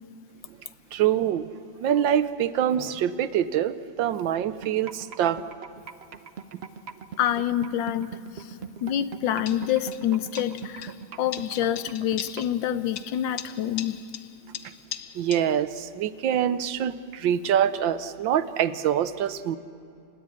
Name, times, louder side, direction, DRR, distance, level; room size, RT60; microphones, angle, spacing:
voice 1, 0.9-1.5 1.8-5.4 15.1-19.6, right 10 dB, 85° right, 13 dB, 1.6 m, -25 dB
sound 1, 4.6-12.6, right 7 dB, 55° right, 0.7 m, -40 dB
voice 2, 7.2-8.5 8.8-10.9 11.2-14.0, left 11 dB, 80° left, 13 dB, 1.6 m, -27 dB
sound 2, 9.5-10.1 10.3-11.0 11.3-12.6 13.0-15.4, left 9 dB, 65° left, 1.4 m, -40 dB
29.5 x 17.0 x 9.9 m, 2.5 s
omnidirectional pair, 2.0 m